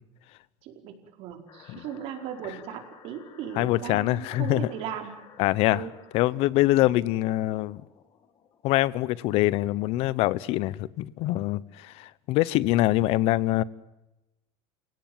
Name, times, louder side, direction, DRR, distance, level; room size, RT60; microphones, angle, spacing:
voice 1, 0.6-5.1 5.7-5.9 6.8-7.0, right 9 dB, 55° right, 5 dB, 4.9 m, -37 dB
sound 1, 1.5-6.5 7.3-9.8, left 8 dB, 35° left, 2.7 m, -55 dB
voice 2, 3.5-4.7 5.4-5.9 6.1-7.8 8.6-13.6, left 16 dB, 55° left, 21 dB, 1.0 m, -24 dB
29.5 x 17.0 x 9.5 m, 0.94 s
cardioid pair, 160°, 12 cm